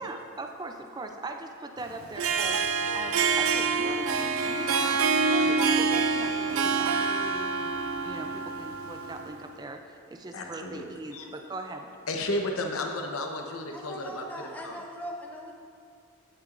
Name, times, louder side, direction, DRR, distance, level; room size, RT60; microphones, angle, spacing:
voice 1, 0.0-2.6 2.9-5.0 5.5-9.8 10.1-11.9, right 2 dB, 20° right, 5 dB, 0.4 m, -40 dB
Harp, 2.0-9.4, right 4 dB, 80° right, 0.5 m, -26 dB
voice 2, 10.3-10.9 11.1-11.3 12.1-14.2 14.6-14.8, left 1 dB, 80° left, 2 dB, 0.9 m, -33 dB
voice 3, 13.7-15.5, equal, 5° left, -1 dB, 0.8 m, -40 dB
16.0 x 6.0 x 2.6 m, 2.3 s
head